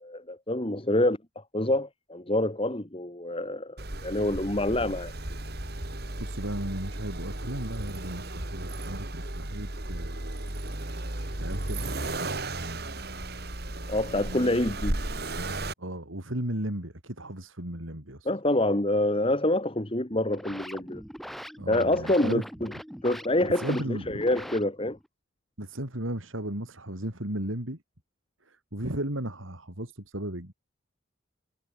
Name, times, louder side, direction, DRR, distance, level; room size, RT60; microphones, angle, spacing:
voice 1, 0.0-5.1 13.9-15.0 18.3-21.0 21.7-22.7 23.0-25.0, left 1 dB, 30° left, 1.9 m, -27 dB
Accelerating revving vroom, 3.8-15.7, right 1 dB, 50° right, 3.5 m, -35 dB
voice 2, 6.2-10.5 11.4-12.6 14.3-14.6 15.2-15.3 15.8-18.3 21.6-22.4 23.4-24.3 25.6-27.8 28.4-30.5, right 1 dB, 85° right, 4.9 m, -35 dB
sound 1, 20.1-25.1, equal, ahead, 2.8 m, -42 dB
head